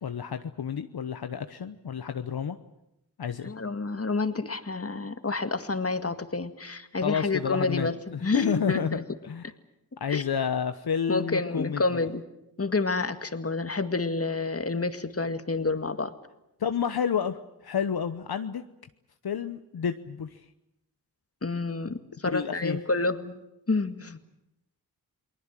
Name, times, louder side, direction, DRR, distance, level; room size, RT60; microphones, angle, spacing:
voice 1, 0.0-2.6 3.2-3.5 7.0-9.5 10.0-12.1 16.6-18.6 19.2-20.4 22.3-22.8, left 7 dB, 65° left, 8 dB, 1.1 m, -30 dB
voice 2, 3.4-9.0 10.1-10.2 11.1-12.2 12.6-16.1 21.4-23.4 23.7-24.2, left 3 dB, 35° left, 9 dB, 2.0 m, -29 dB
29.0 x 20.0 x 7.6 m, 0.86 s
cardioid pair, 40°, 40 cm